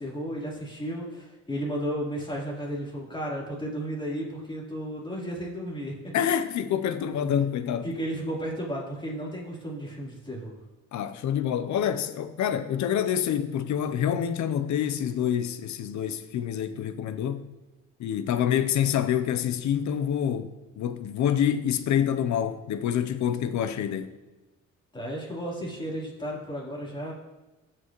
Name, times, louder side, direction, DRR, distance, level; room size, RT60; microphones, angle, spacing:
voice 1, 0.0-5.9 7.8-10.6 24.9-27.1, equal, 15° left, 3.4 m, -33 dB
voice 2, 6.1-7.9 10.9-17.5 18.0-24.1, left 9 dB, 70° left, 0.7 m, -27 dB
15.5 x 6.1 x 3.1 m
cardioid pair, 90°, 30 cm